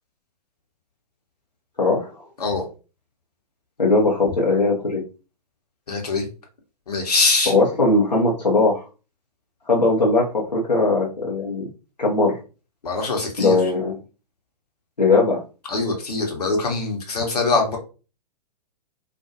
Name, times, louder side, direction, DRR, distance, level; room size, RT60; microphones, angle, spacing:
voice 1, 1.8-2.2 3.8-5.0 7.5-8.9 9.7-11.7 12.0-12.4 13.4-14.0 15.0-15.4, left 3 dB, 85° left, -3 dB, 0.7 m, -19 dB
voice 2, 5.9-6.2 6.9-7.5 12.8-13.6 15.7-17.8, left 3 dB, 65° left, 2 dB, 0.9 m, -23 dB
2.4 x 2.2 x 2.7 m, 0.33 s
figure-of-eight pair, 110°, 21 cm